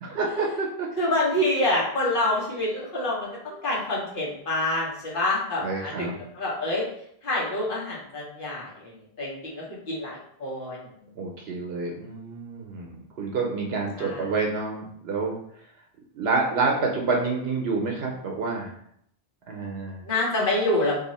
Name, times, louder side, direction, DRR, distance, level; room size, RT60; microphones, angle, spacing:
voice 1, 0.0-0.9 5.6-6.1 11.2-15.4 16.2-18.7 19.5-20.0, right 3 dB, 75° right, 0 dB, 0.8 m, -28 dB
voice 2, 1.0-6.1 6.3-6.9 7.2-8.9 9.2-10.9 14.0-14.3 20.0-21.0, left 1 dB, 55° left, -5 dB, 1.2 m, -27 dB
2.7 x 2.4 x 4.0 m, 0.70 s
omnidirectional pair, 1.0 m